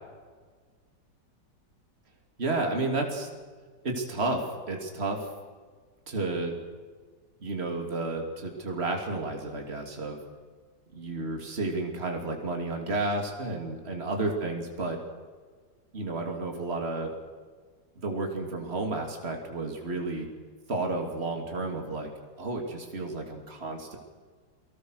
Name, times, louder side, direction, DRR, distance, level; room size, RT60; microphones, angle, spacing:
voice 1, 2.4-3.3 3.8-5.3 6.1-6.6 7.4-10.2 10.9-15.0 15.9-17.1 18.0-20.3 20.7-22.1 22.4-24.0, right 2 dB, 35° right, 2 dB, 3.1 m, -31 dB
28.5 x 19.5 x 6.5 m, 1.5 s
omnidirectional pair, 1.9 m